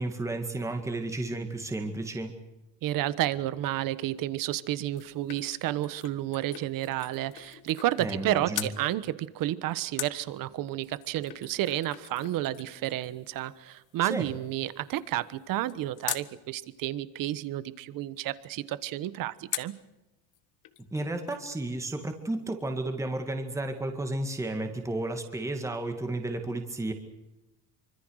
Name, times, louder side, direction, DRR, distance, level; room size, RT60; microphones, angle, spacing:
voice 1, 0.0-2.3 8.0-8.7 14.0-14.3 20.9-26.9, right 2 dB, 5° right, 5 dB, 2.1 m, -32 dB
voice 2, 2.8-19.7, right 14 dB, 50° right, 16 dB, 1.3 m, -31 dB
sound 1, 4.6-8.2 8.5-8.8 10.0-16.3 19.5-19.9 20.3-20.4 20.6-21.6 21.9-22.0, left 13 dB, 45° left, 1.5 m, -42 dB
26.0 x 25.0 x 6.5 m, 0.98 s
cardioid pair, 155°, 44 cm